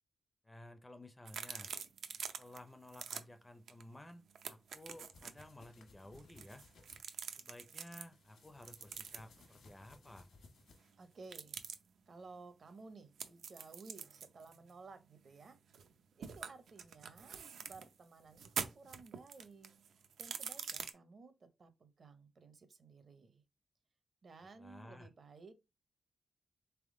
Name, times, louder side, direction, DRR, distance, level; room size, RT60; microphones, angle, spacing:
voice 1, 0.4-1.7 2.4-6.6 7.3-10.3 24.6-25.1, left 1 dB, 10° left, 0.4 m, -54 dB
sound 1, 1.3-2.6 2.9-3.2 3.7-3.8 4.1-5.4 6.2-8.1 8.6-9.4 11.2-11.8 13.2-15.9 16.2-17.9 18.3-20.9, right 7 dB, 90° right, 0.5 m, -45 dB
sound 2, 4.5-7.0 8.0-11.2, left 3 dB, 80° left, 1.1 m, -63 dB
voice 2, 11.0-11.6 12.1-15.6 16.2-17.4 17.7-23.4 24.2-25.5, right 4 dB, 45° right, 0.6 m, -56 dB
3.7 x 3.5 x 3.6 m
wide cardioid pair, 175°, 0 cm